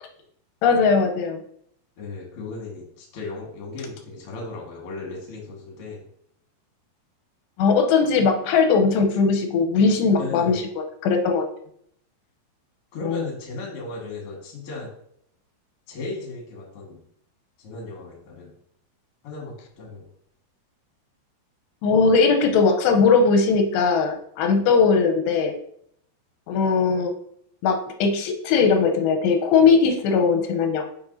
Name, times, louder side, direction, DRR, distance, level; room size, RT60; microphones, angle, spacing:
voice 1, 0.6-1.4 7.6-11.5 13.0-13.3 21.8-25.5 26.5-27.1 27.6-30.8, left 5 dB, 85° left, 4 dB, 2.8 m, -19 dB
voice 2, 2.0-6.0 10.2-10.6 12.9-14.9 15.9-17.0 17.6-18.5 19.2-20.0, left 3 dB, 50° left, -1 dB, 1.8 m, -36 dB
7.2 x 5.3 x 2.7 m, 0.68 s
omnidirectional pair, 5.0 m